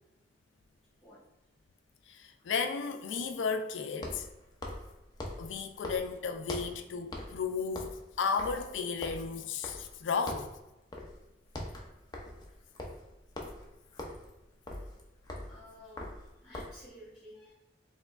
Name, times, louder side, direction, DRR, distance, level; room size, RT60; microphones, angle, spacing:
sound 1, 0.6-0.7 3.9-6.8 7.1-7.4 7.7-10.0 10.3-10.6 10.9-11.2 11.5-16.9, left 1 dB, 20° left, 0.5 m, -43 dB
voice 1, 2.1-4.2 5.4-7.9 8.2-10.5, left 5 dB, 85° left, 0.4 m, -34 dB
voice 2, 15.5-17.5, equal, 5° right, 1.1 m, -53 dB
4.5 x 2.9 x 2.4 m
head